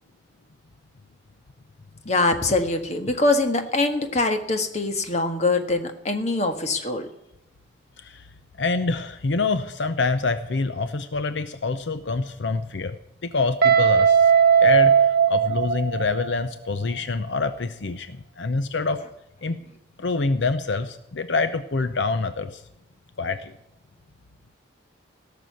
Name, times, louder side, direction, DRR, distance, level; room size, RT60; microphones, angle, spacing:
voice 1, 2.0-7.1, left 2 dB, 35° left, 6 dB, 1.5 m, -23 dB
voice 2, 8.6-13.0 13.2-14.3 14.6-19.0 19.4-19.7 20.0-22.6 23.2-23.5, left 3 dB, 70° left, 11 dB, 0.7 m, -26 dB
Guitar, 13.6-16.4, right 7 dB, 50° right, 1.6 m, -18 dB
17.0 x 6.8 x 9.3 m, 0.84 s
head